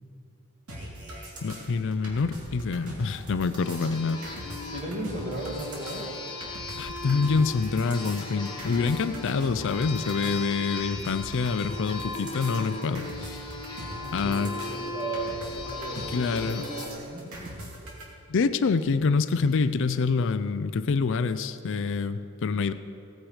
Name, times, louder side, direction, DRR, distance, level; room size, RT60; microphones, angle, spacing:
sound 1, 0.7-18.0, right 1 dB, 85° right, 2.5 m, -42 dB
voice 1, 1.4-4.2 6.8-13.5 14.1-14.5 16.1-16.6 18.3-22.7, left 4 dB, 60° left, 12 dB, 0.4 m, -26 dB
sound 2, 3.6-16.9, left 3 dB, 20° left, 1.7 m, -38 dB
voice 2, 4.7-6.1 14.0-17.5, right 2 dB, 35° right, -1 dB, 2.1 m, -36 dB
16.5 x 9.1 x 4.9 m, 2.8 s
head